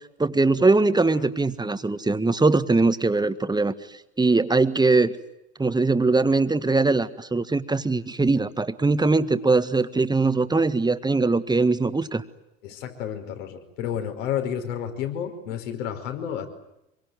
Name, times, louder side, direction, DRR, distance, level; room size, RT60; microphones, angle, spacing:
voice 1, 0.2-3.7 4.2-5.1 5.6-12.2, right 3 dB, 10° right, 11 dB, 1.7 m, -21 dB
voice 2, 12.6-16.5, left 9 dB, 65° left, 6 dB, 5.1 m, -31 dB
26.0 x 23.5 x 9.5 m, 0.86 s
hypercardioid pair, 85°, 41 cm